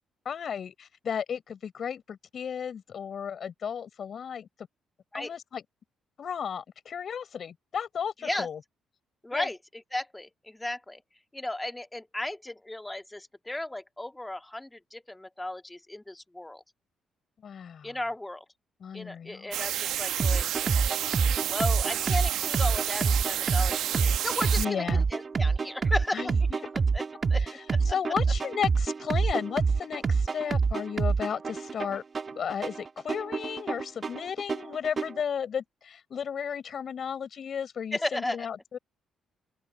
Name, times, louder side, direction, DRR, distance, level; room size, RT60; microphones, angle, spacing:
voice 1, 0.3-4.5 5.1-5.6 6.2-8.6 9.3-9.5 17.4-17.9 18.8-19.5 24.6-25.0 26.1-26.4 27.9-32.0 32.4-38.8, left 7 dB, 55° left, 6.9 m, -34 dB
voice 2, 9.2-11.0 11.3-16.6 17.8-18.4 18.9-20.5 21.5-27.0 27.3-28.0 37.9-38.5, left 1 dB, 10° left, 2.1 m, -35 dB
sound 1, 19.5-24.6, right 12 dB, 80° right, 1.0 m, -31 dB
sound 2, 20.2-35.2, right 5 dB, 35° right, 1.4 m, -27 dB
open air
cardioid pair, 90°, 0 cm